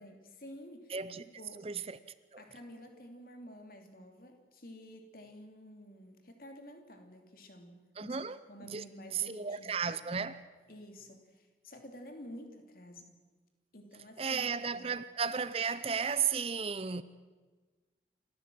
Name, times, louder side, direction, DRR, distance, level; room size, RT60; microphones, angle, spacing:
voice 1, 0.0-1.7 2.4-9.8 10.7-13.1 13.7-14.9, equal, 55° left, 2.9 m, -51 dB
voice 2, 0.9-1.2 1.6-2.0 2.3-2.4 8.0-8.4 8.7-8.8 9.1-10.4 14.2-17.0, right 6 dB, 35° right, 0.6 m, -34 dB
28.5 x 13.5 x 7.7 m
head